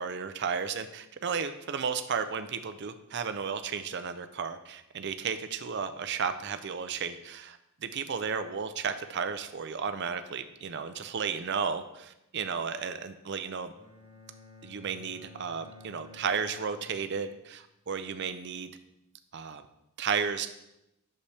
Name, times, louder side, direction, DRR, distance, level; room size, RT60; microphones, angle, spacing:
voice 1, 0.0-13.7 14.6-18.7 19.3-19.6 20.0-20.5, right 6 dB, 50° right, 10 dB, 0.5 m, -33 dB
Bowed string instrument, 13.8-17.8, left 3 dB, 25° left, 1.2 m, -53 dB
8.2 x 6.7 x 3.4 m, 0.86 s
head